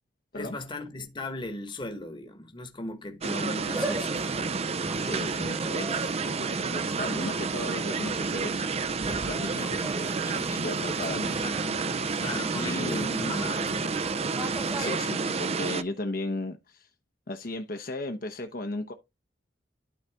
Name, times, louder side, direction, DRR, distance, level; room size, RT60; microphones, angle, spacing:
voice 1, 0.3-4.3 6.4-6.8 11.4-11.8 12.2-14.0, left 2 dB, 25° left, 1.2 m, -37 dB
sound 1, 3.2-15.8, right 4 dB, 35° right, 0.5 m, -30 dB
sound 2, 3.6-14.9, right 1 dB, 15° right, 1.2 m, -40 dB
voice 2, 5.0-11.8 12.6-13.1 14.7-16.9 17.3-18.9, left 2 dB, 55° left, 0.9 m, -36 dB
12.0 x 4.0 x 3.4 m
head